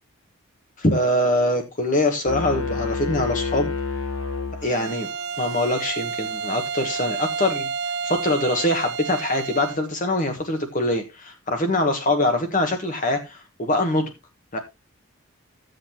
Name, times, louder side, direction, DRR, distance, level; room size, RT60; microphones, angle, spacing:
voice 1, 0.8-3.7 4.6-5.1 5.4-7.7 8.0-14.1 14.5-14.6, left 1 dB, 40° left, 1.2 m, -23 dB
sound 1, 2.3-5.2, left 4 dB, 80° left, 1.2 m, -29 dB
Bowed string instrument, 4.6-9.9, right 5 dB, 50° right, 0.4 m, -30 dB
14.0 x 7.8 x 2.9 m
head